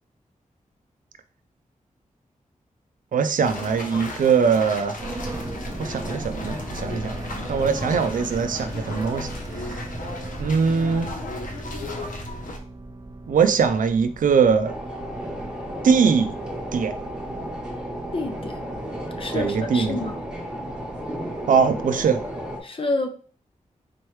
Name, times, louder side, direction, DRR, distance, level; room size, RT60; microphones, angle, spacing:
voice 1, 3.1-5.0 5.8-7.2 7.5-9.3 9.6-9.8 10.4-11.1 13.3-14.7 15.8-16.4 16.7-17.0 19.3-20.0 21.5-22.2, right 6 dB, 80° right, 0.4 m, -21 dB
sound 1, 3.4-12.6, left 2 dB, 85° left, 0.8 m, -35 dB
sound 2, 5.0-20.2, right 2 dB, 25° right, 0.5 m, -37 dB
sound 3, 14.6-22.6, equal, 5° right, 1.1 m, -33 dB
voice 2, 18.1-18.6 19.2-20.2 22.6-23.1, left 2 dB, 40° left, 0.6 m, -28 dB
4.3 x 3.1 x 3.1 m
wide cardioid pair, 105°, 14 cm